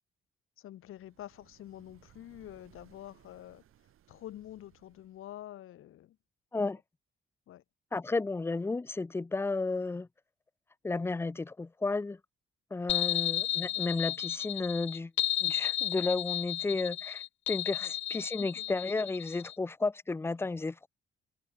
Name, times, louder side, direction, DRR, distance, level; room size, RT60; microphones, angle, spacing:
voice 1, 0.6-3.6 4.1-6.2 7.5-7.6 13.1-13.3 17.8-18.7, left 13 dB, 85° left, 3.5 m, -48 dB
sound 1, 0.8-5.5, right 12 dB, 80° right, 7.4 m, -63 dB
voice 2, 7.9-10.1 10.8-12.2 12.7-15.1 15.4-20.9, left 3 dB, 10° left, 0.4 m, -33 dB
sound 2, 12.9-19.5, left 12 dB, 65° left, 0.5 m, -33 dB
cardioid pair, 80°, 21 cm